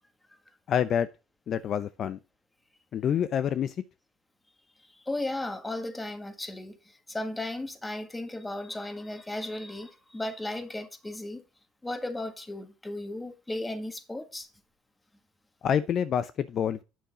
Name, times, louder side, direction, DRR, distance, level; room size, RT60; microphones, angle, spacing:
voice 1, 0.7-1.1 1.5-2.2 2.9-3.7 15.6-16.8, left 8 dB, 50° left, 0.6 m, -27 dB
voice 2, 4.9-11.4 11.8-14.5, left 1 dB, 15° left, 1.6 m, -35 dB
9.1 x 6.6 x 3.9 m
hypercardioid pair, 75°, 0 cm